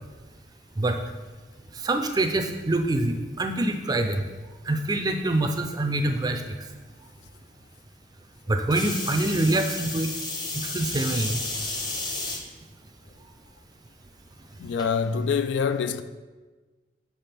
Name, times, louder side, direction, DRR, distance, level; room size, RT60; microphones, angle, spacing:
voice 1, 1.8-4.2 4.7-6.4 8.5-10.1 10.5-11.4, right 2 dB, 20° right, 0.4 m, -25 dB
sound 1, 8.7-12.4 13.1-13.5 14.8-14.9, left 2 dB, 25° left, 0.8 m, -32 dB
voice 2, 14.6-16.0, left 6 dB, 80° left, 0.3 m, -25 dB
6.3 x 5.8 x 3.4 m
head